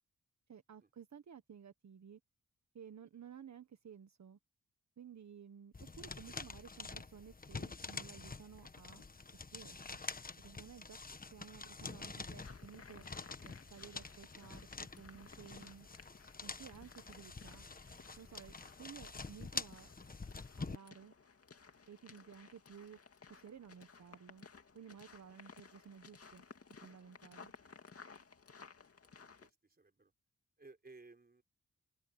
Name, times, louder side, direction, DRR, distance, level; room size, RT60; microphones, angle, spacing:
voice 1, 0.5-2.2 2.7-4.4 5.0-9.0 9.3-10.0 10.4-11.0 11.3-13.0 13.4-15.9 16.4-17.6 18.2-19.9 20.6-21.1 21.9-23.0 23.3-24.5 24.7-26.4 26.8-27.5, right 7 dB, 65° right, 1.5 m, -55 dB
sound 1, 5.7-20.8, left 4 dB, 30° left, 1.3 m, -47 dB
sound 2, 12.3-29.5, left 5 dB, 50° left, 2.5 m, -58 dB
voice 2, 29.2-30.1 30.6-31.4, right 3 dB, 30° right, 4.1 m, -59 dB
open air
cardioid pair, 60°, 30 cm